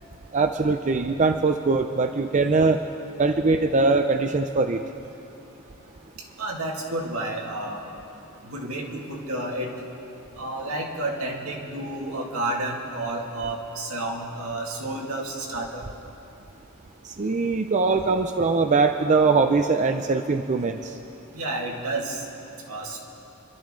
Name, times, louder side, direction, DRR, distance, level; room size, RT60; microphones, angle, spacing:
voice 1, 0.3-2.8 3.2-4.8 17.0-20.9, right 3 dB, 35° right, 6 dB, 0.5 m, -22 dB
voice 2, 6.4-7.8 8.4-9.9 10.4-15.8 21.3-22.2 22.7-23.0, right 2 dB, 80° right, -1 dB, 2.2 m, -30 dB
28.0 x 12.5 x 3.8 m, 2.9 s
head